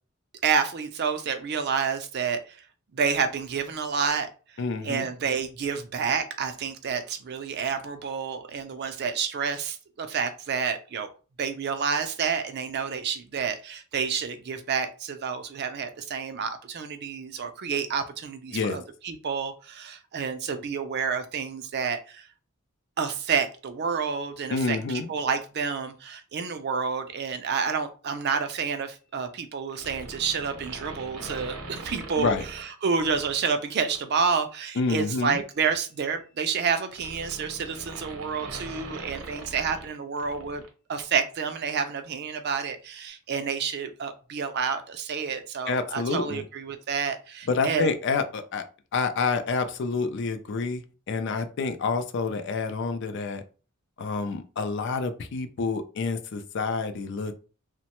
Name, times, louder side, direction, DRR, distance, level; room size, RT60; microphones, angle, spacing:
voice 1, 0.4-2.4 2.9-4.3 4.8-11.1 11.4-22.2 23.0-40.6 40.9-47.9, right 6 dB, 50° right, 8 dB, 0.4 m, -29 dB
voice 2, 4.6-5.1 18.5-18.8 24.5-25.1 32.2-32.5 34.8-35.4 45.7-46.4 47.5-48.6 48.9-53.4 54.0-57.4, left 4 dB, 55° left, 9 dB, 0.4 m, -28 dB
sound 1, 29.7-33.4 33.9-34.1 35.3-40.7 40.9-41.0, right 2 dB, 80° right, 0.7 m, -42 dB
3.1 x 2.1 x 2.9 m, 0.35 s
head